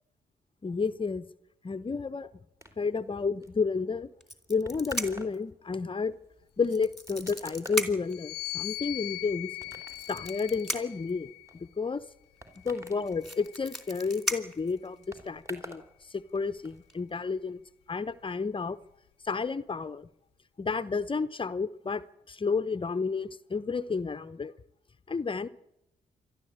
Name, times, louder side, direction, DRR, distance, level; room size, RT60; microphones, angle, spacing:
voice 1, 0.6-1.3 1.6-2.3 2.8-4.1 4.5-6.1 6.6-9.5 10.1-11.3 11.5-12.0 12.7-15.8 16.1-17.6 17.9-18.8 19.2-20.1 20.6-24.5 25.1-25.5, left 4 dB, 30° left, 0.8 m, -31 dB
sound 1, 2.6-15.9 16.2-16.8, left 1 dB, 15° right, 3.4 m, -49 dB
sound 2, 4.2-5.4 6.6-8.2 9.6-11.1 12.5-12.6 12.9-15.3 16.1-16.4 16.7-16.9, right 1 dB, ahead, 2.9 m, -36 dB
sound 3, 8.0-11.6 12.5-14.1, left 19 dB, 80° left, 0.7 m, -41 dB
27.5 x 12.0 x 8.8 m
hypercardioid pair, 45°, 16 cm